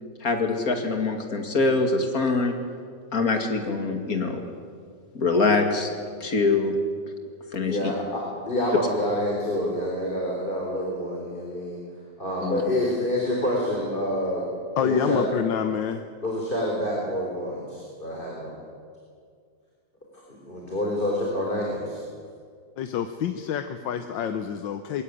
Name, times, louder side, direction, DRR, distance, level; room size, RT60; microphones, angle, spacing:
voice 1, 0.2-2.5 3.1-4.4 5.1-5.9 6.2-6.7 7.5-7.9 12.4-12.6, left 3 dB, 50° left, 4 dB, 2.8 m, -24 dB
voice 2, 7.6-11.8 12.2-14.5 14.8-15.3 16.2-18.5 20.5-22.0, left 1 dB, 25° left, -2 dB, 4.0 m, -27 dB
voice 3, 14.8-16.0 22.8-25.0, left 7 dB, 85° left, 8 dB, 1.6 m, -27 dB
22.0 x 16.5 x 9.9 m, 2.2 s
omnidirectional pair, 1.9 m